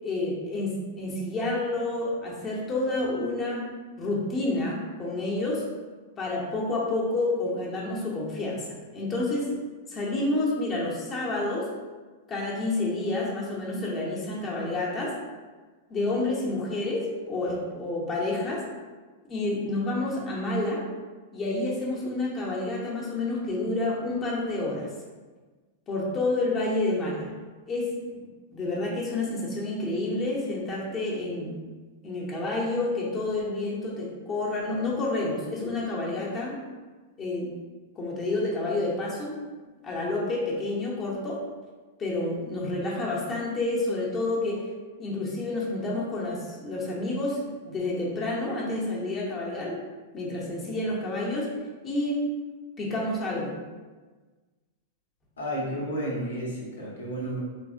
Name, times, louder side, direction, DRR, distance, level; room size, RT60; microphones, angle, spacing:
voice 1, 0.0-3.6 4.0-5.6 6.2-8.7 8.9-9.5 9.9-11.7 12.3-15.1 15.9-18.6 19.3-20.8 21.3-24.9 25.9-27.3 27.7-28.2 28.5-31.6 32.0-36.6 37.2-37.5 38.0-39.4 39.8-41.4 42.0-44.6 45.0-47.4 47.6-49.8 50.1-51.5 51.8-52.2 52.8-53.5, left 2 dB, 30° left, -4 dB, 0.7 m, -29 dB
voice 2, 55.4-57.4, equal, 90° left, -4 dB, 0.8 m, -32 dB
3.2 x 2.0 x 2.5 m, 1.3 s
hypercardioid pair, 120°, 0 cm